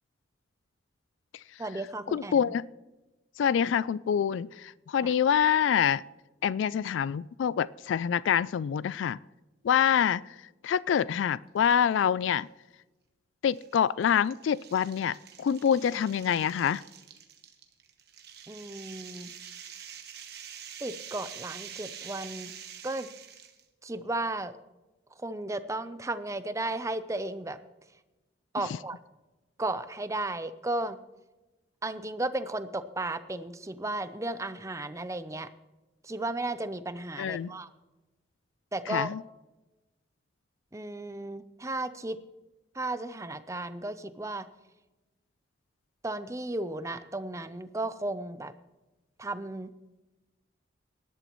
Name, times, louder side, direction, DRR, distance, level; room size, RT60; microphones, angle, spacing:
voice 1, 1.6-2.3 5.0-5.1 18.5-19.3 20.8-22.5 22.8-23.1 23.8-24.6 25.2-27.6 28.5-29.0 29.6-31.0 31.8-35.5 36.0-37.7 38.7-39.1 40.7-42.2 42.7-44.5 46.0-48.5 49.2-49.7, right 2 dB, 15° right, 12 dB, 0.6 m, -34 dB
voice 2, 2.1-2.6 3.4-6.0 6.4-9.2 9.6-10.4 10.6-12.5 13.4-16.8 37.2-37.5 38.9-39.2, left 8 dB, 75° left, 20 dB, 0.3 m, -26 dB
sound 1, 11.6-12.0 12.4-12.5 13.5-23.6, right 9 dB, 55° right, 1.3 m, -46 dB
18.0 x 12.0 x 3.1 m, 1.1 s
head